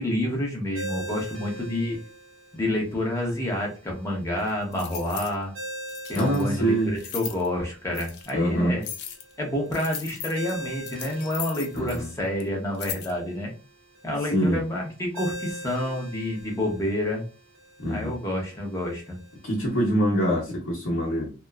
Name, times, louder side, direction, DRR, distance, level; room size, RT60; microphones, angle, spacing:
voice 1, 0.0-2.0 2.5-5.5 6.1-8.8 9.4-13.5 14.0-17.2 17.9-19.2, left 1 dB, 15° left, -1 dB, 0.8 m, -28 dB
Ringtone, 0.7-19.9, right 1 dB, 85° right, 1.0 m, -43 dB
sound 1, 4.5-5.3 5.9-6.4 7.0-7.5 7.9-8.3 8.8-9.3 9.7-12.1 12.4-12.5 12.7-13.1, left 9 dB, 55° left, 0.4 m, -37 dB
voice 2, 6.1-6.9 8.3-8.8 11.7-12.1 14.3-14.6 17.8-18.1 19.4-21.3, equal, 80° left, -6 dB, 0.8 m, -24 dB
2.9 x 2.1 x 2.3 m, 0.34 s
head